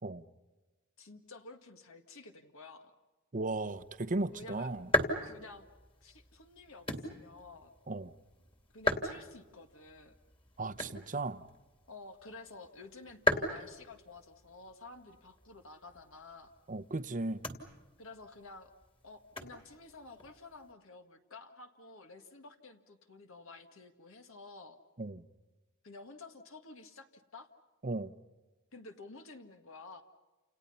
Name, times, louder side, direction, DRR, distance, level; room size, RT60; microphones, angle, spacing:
voice 1, 1.0-2.9 4.3-4.7 5.2-5.7 6.0-7.7 8.7-10.1 11.9-16.5 18.0-18.7 19.0-24.8 25.8-27.5 28.7-30.0, left 3 dB, 65° left, 1.8 m, -51 dB
voice 2, 3.3-4.9 7.9-8.1 10.6-11.5 16.7-17.4 25.0-25.2 27.8-28.1, right 2 dB, 40° right, 0.9 m, -36 dB
sound 1, 3.7-20.7, equal, 25° left, 2.6 m, -39 dB
29.5 x 28.5 x 5.6 m
head